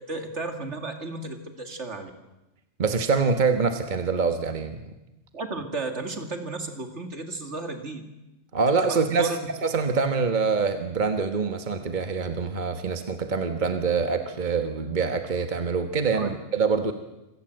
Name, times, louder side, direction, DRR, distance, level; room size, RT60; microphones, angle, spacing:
voice 1, 0.0-2.1 5.3-8.0 8.9-9.5 16.1-16.3, right 2 dB, 65° right, 6 dB, 2.6 m, -33 dB
voice 2, 2.8-4.8 8.5-9.3 9.6-16.9, right 5 dB, 40° right, 7 dB, 1.4 m, -25 dB
26.5 x 17.5 x 7.7 m, 1.0 s
omnidirectional pair, 1.3 m